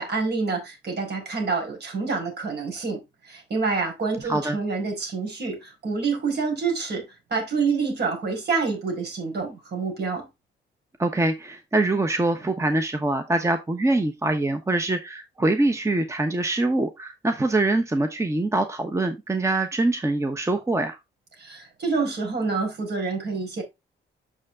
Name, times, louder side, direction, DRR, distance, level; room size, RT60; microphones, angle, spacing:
voice 1, 0.0-3.0 3.3-10.3 21.4-23.6, right 4 dB, 55° right, 4.9 m, -27 dB
voice 2, 4.2-4.6 11.0-21.0, right 2 dB, 15° right, 1.0 m, -24 dB
6.5 x 6.5 x 3.6 m
cardioid pair, 90°, 20 cm